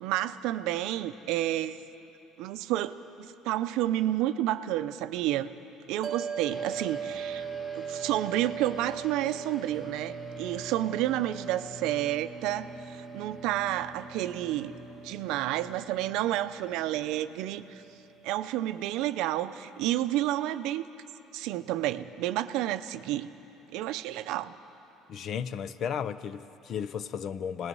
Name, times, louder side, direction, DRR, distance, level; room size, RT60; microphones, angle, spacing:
voice 1, 0.0-1.8 2.4-5.5 5.9-7.5 7.7-14.7 15.0-17.8 18.2-20.8 21.3-23.3 23.7-24.5, right 14 dB, 70° right, 12 dB, 0.6 m, -30 dB
sound 1, 6.0-18.5, right 7 dB, 25° right, 1.4 m, -41 dB
sound 2, 6.5-18.2, left 1 dB, 20° left, 2.0 m, -48 dB
voice 2, 25.1-27.7, left 7 dB, 40° left, 14 dB, 0.5 m, -34 dB
26.5 x 19.5 x 5.5 m, 3.0 s
cardioid pair, 160°, 0 cm